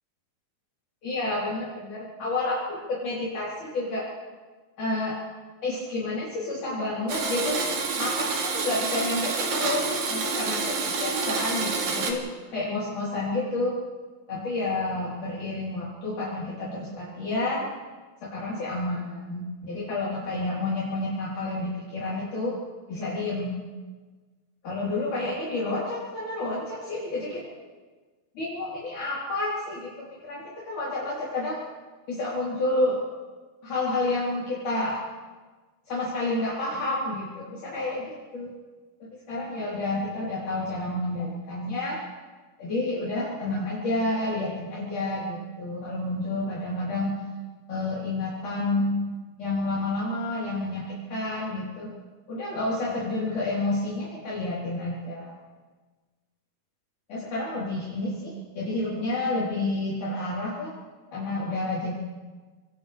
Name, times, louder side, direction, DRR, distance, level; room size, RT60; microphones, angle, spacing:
voice 1, 1.0-4.1 4.8-5.2 5.6-7.6 8.0-12.2 12.5-13.8 14.3-17.7 18.2-22.6 22.9-23.6 24.6-27.3 28.4-31.6 32.1-33.0 33.6-35.0 35.9-38.5 39.3-42.0 42.6-47.2 47.7-49.1 49.4-51.9 52.3-55.3 57.1-60.7 61.1-61.9, left 2 dB, 55° left, -8 dB, 5.4 m, -29 dB
Domestic sounds home sounds, 7.1-12.1, right 4 dB, 65° right, 4.0 m, -28 dB
29.0 x 26.0 x 3.5 m, 1.4 s
omnidirectional pair, 4.5 m